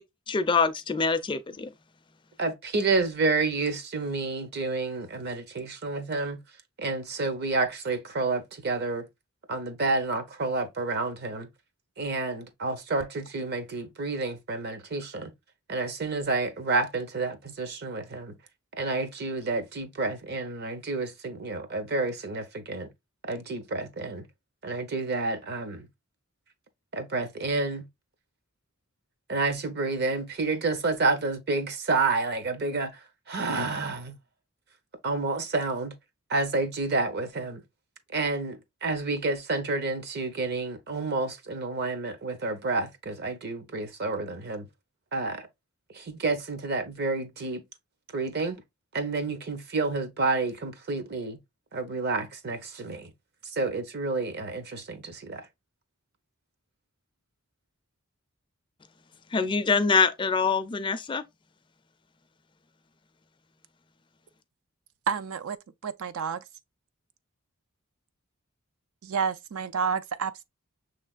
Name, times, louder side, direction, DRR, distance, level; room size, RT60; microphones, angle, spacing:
voice 1, 0.3-1.7 59.3-61.2, left 5 dB, 25° left, 0.4 m, -24 dB
voice 2, 2.4-6.4 6.8-9.1 9.5-11.5 12.0-15.3 15.7-18.4 18.7-22.9 23.2-24.2 24.6-25.9 26.9-27.9 29.3-33.0 33.3-34.2 35.0-35.9 36.3-37.6 38.1-44.7 45.1-45.5 45.9-47.6 48.1-48.6 48.9-51.4 51.7-53.1 53.5-55.4, right 3 dB, 55° right, 0.8 m, -29 dB
voice 3, 65.1-65.6 65.8-66.4 69.0-70.4, right 6 dB, 80° right, 0.4 m, -29 dB
6.3 x 3.2 x 2.3 m
head